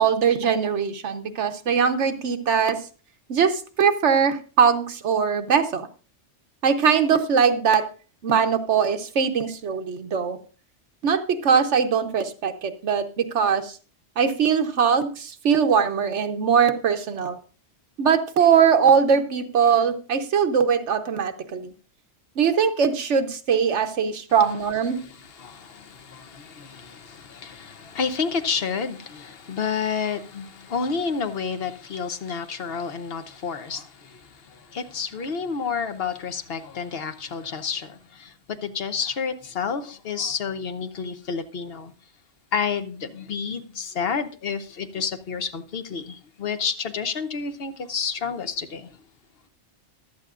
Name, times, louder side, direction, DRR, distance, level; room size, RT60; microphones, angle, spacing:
voice 1, 0.0-2.8 3.3-5.9 6.6-7.8 8.2-10.4 11.0-13.7 14.2-17.4 18.0-21.7 22.4-25.0, right 6 dB, 70° right, 1.2 m, -21 dB
voice 2, 24.9-38.3 38.6-41.9 42.5-49.0, left 6 dB, 55° left, 1.1 m, -30 dB
15.0 x 11.5 x 2.5 m
omnidirectional pair, 1.2 m